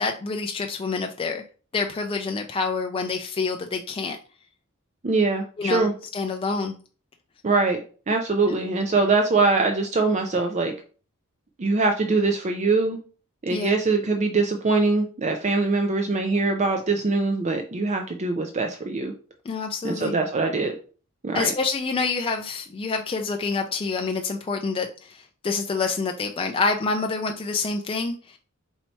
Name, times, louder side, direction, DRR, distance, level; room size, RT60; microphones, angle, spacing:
voice 1, 0.0-1.4 1.7-4.2 5.6-5.9 6.1-6.8 13.5-13.7 19.5-20.2 21.3-28.4, left 4 dB, 25° left, 4 dB, 0.3 m, -27 dB
voice 2, 5.0-5.9 7.4-10.7 11.6-13.0 13.4-19.1 19.8-20.7 21.2-21.5, right 3 dB, 35° right, 4 dB, 0.5 m, -23 dB
4.4 x 2.7 x 4.3 m, 0.39 s
head